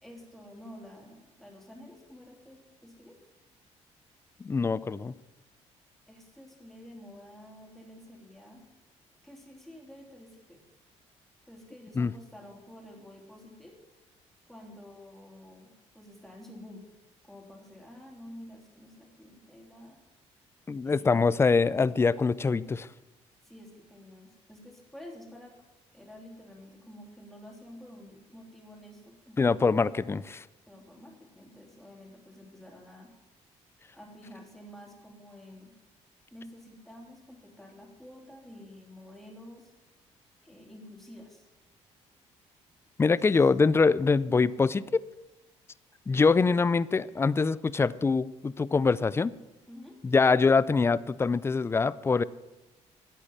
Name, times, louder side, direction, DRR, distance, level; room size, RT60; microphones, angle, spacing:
voice 1, 0.0-3.2 6.1-8.7 9.2-10.6 11.5-13.8 14.5-15.7 15.9-16.9 17.2-20.0 20.8-21.3 23.4-25.6 25.9-29.5 30.7-33.1 33.9-35.7 36.3-39.7 40.4-41.5 43.1-43.4 49.7-50.0, left 1 dB, ahead, -1 dB, 3.3 m, -49 dB
voice 2, 4.4-5.1 12.0-12.1 20.7-22.9 29.4-30.4 43.0-45.0 46.1-49.3 50.0-52.2, left 4 dB, 20° left, 18 dB, 0.4 m, -24 dB
12.0 x 8.4 x 7.3 m, 1.1 s
cardioid pair, 105°, 12 cm